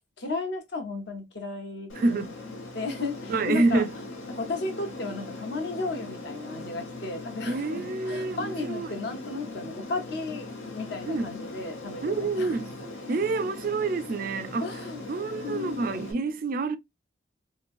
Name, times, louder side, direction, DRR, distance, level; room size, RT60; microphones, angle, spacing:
voice 1, 0.2-2.2 2.7-3.8 4.3-12.6 14.6-15.0 15.4-16.1, left 3 dB, 55° left, 0.8 m, -34 dB
Aircraft, 1.9-16.1, left 2 dB, 80° left, 0.9 m, -40 dB
voice 2, 1.9-2.3 3.3-4.0 7.5-8.9 11.1-11.3 12.0-12.7 13.1-16.8, right 3 dB, 45° right, 0.3 m, -28 dB
2.9 x 2.7 x 2.4 m
head